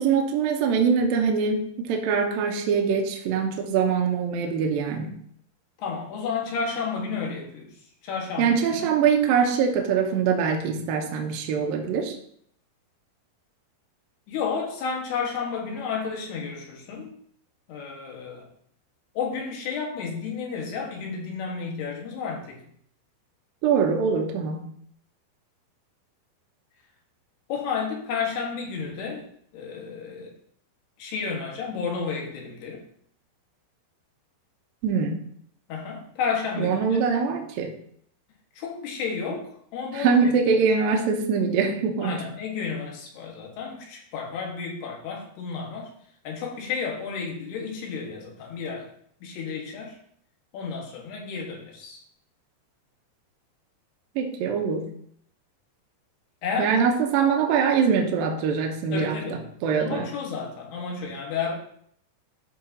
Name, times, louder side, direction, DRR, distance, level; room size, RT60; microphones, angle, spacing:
voice 1, 0.0-5.1 8.4-12.1 23.6-24.7 34.8-35.2 36.6-37.7 39.9-42.2 54.2-54.9 56.6-60.1, right 6 dB, 75° right, 3 dB, 2.4 m, -23 dB
voice 2, 5.8-7.7 8.0-8.9 10.7-10.9 14.3-17.1 17.7-18.5 19.1-22.6 27.5-29.3 29.5-30.3 31.0-32.8 35.7-36.9 38.6-40.6 42.0-45.9 46.2-48.9 49.2-50.0 50.5-52.0 56.4-56.7 58.9-59.4 59.8-61.5, left 5 dB, 75° left, -1 dB, 3.5 m, -32 dB
13.0 x 4.8 x 2.8 m, 0.64 s
omnidirectional pair, 4.7 m